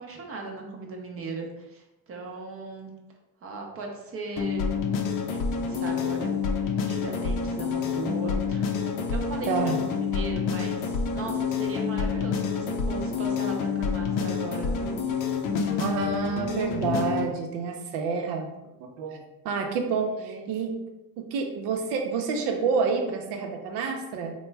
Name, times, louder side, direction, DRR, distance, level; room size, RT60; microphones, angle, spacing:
voice 1, 0.0-2.9 3.4-4.7 5.3-6.3 6.6-15.0 20.1-20.5, right 3 dB, 35° right, 1 dB, 0.7 m, -38 dB
sound 1, 4.4-17.3, left 5 dB, 50° left, 0.5 m, -28 dB
voice 2, 9.5-9.8 15.8-18.5 18.8-20.7 21.2-24.3, right 5 dB, 70° right, 3 dB, 0.7 m, -28 dB
3.1 x 2.2 x 3.3 m, 0.99 s
supercardioid pair, 100°, 41 cm